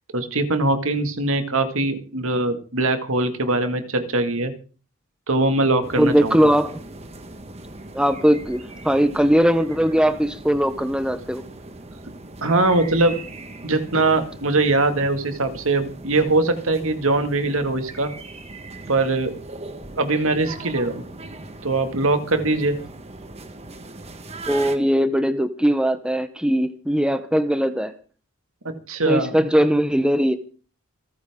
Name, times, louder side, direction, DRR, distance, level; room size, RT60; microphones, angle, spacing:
voice 1, 0.1-4.5 5.3-6.4 12.4-13.1 13.6-18.1 18.9-19.3 20.0-21.0 21.6-22.8 28.6-29.3, right 2 dB, 65° right, 8 dB, 2.1 m, -21 dB
sound 1, 5.8-24.8, right 2 dB, 30° right, 1.5 m, -39 dB
voice 2, 6.0-6.7 7.9-11.4 24.5-27.9 29.1-30.3, equal, 5° right, 9 dB, 0.8 m, -20 dB
28.0 x 9.5 x 3.7 m, 0.39 s
head